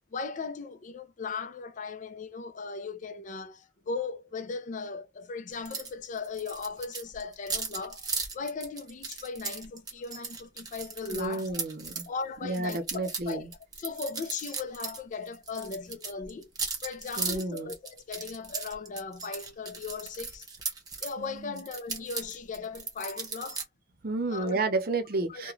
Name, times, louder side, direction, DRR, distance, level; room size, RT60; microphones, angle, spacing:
voice 1, 0.1-8.1 8.3-11.5 12.1-13.5 13.8-16.5 16.8-20.5 21.0-23.7 24.3-24.7 25.3-25.5, left 4 dB, 45° left, 0.4 m, -38 dB
sound 1, 5.7-5.9 6.2-12.1 12.5-15.0 15.3-21.1 21.6-23.6, right 4 dB, 25° right, 0.8 m, -37 dB
voice 2, 11.1-12.1 12.4-13.5 17.2-17.7 21.2-21.6 24.0-25.5, right 3 dB, 60° right, 0.6 m, -31 dB
2.4 x 2.2 x 3.0 m
head